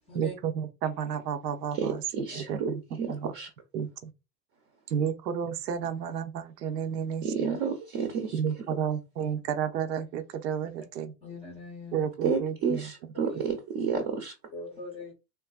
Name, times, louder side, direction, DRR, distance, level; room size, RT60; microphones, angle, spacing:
voice 1, 0.1-2.0 2.4-3.3 3.7-4.1 4.9-7.6 8.3-11.1 11.9-12.9, right 8 dB, 75° right, 0.7 m, -32 dB
voice 2, 1.8-3.5 7.2-8.4 12.2-14.3, right 6 dB, 35° right, 0.7 m, -30 dB
voice 3, 11.2-12.0 13.3-13.4 14.5-15.1, left 1 dB, 10° left, 0.6 m, -41 dB
3.5 x 2.4 x 2.3 m
hypercardioid pair, 130°, 50 cm